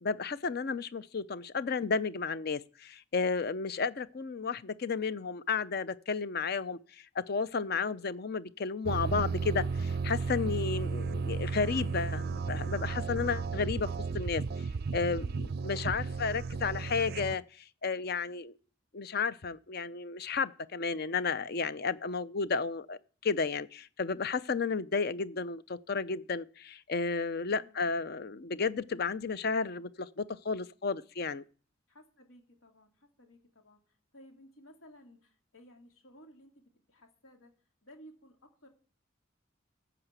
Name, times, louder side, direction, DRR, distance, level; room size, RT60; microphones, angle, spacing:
voice 1, 0.0-13.9 14.1-14.7 14.9-18.5 18.9-31.4, left 5 dB, 50° left, 0.5 m, -33 dB
sound 1, 8.9-17.4, right 4 dB, 50° right, 0.4 m, -34 dB
voice 2, 27.5-27.9 31.9-37.5 37.8-38.7, equal, 90° left, 2.4 m, -57 dB
14.5 x 5.0 x 8.0 m
head